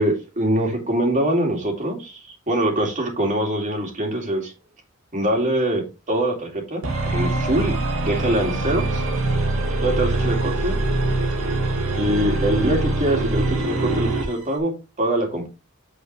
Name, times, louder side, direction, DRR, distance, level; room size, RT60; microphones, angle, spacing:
voice 1, 0.0-2.2 2.5-4.5 5.1-7.7 8.0-9.0 9.8-10.8 12.0-14.7 15.0-15.5, right 1 dB, 40° right, 2 dB, 2.5 m, -23 dB
sound 1, 6.8-14.3, right 2 dB, 85° right, 2.1 m, -23 dB
7.3 x 6.9 x 3.2 m, 0.28 s
head